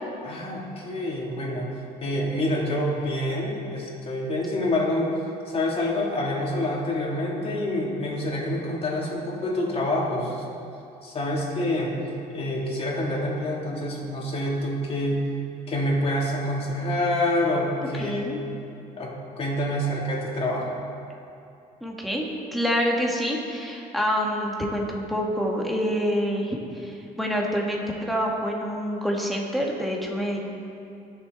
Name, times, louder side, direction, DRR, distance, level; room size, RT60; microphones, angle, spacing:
voice 1, 0.2-1.7 2.0-5.1 5.5-10.4 11.0-11.9 12.3-15.2 15.7-18.3 19.0-20.7, left 1 dB, 35° left, -4 dB, 3.2 m, -27 dB
voice 2, 18.0-18.4 21.8-30.4, equal, ahead, -2 dB, 2.1 m, -27 dB
21.5 x 7.5 x 4.2 m, 2.7 s
cardioid pair, 110°, 17 cm